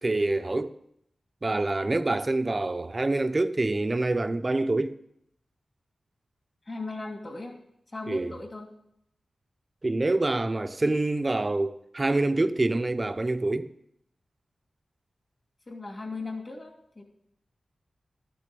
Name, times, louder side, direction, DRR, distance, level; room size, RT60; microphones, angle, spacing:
voice 1, 0.0-0.8 1.4-5.0 8.1-8.3 9.8-13.7, right 2 dB, 35° right, 0.8 m, -26 dB
voice 2, 6.7-7.6 7.9-8.7 15.7-17.0, left 3 dB, 40° left, 2.8 m, -37 dB
13.0 x 6.9 x 6.9 m
cardioid pair, 50°, 0 cm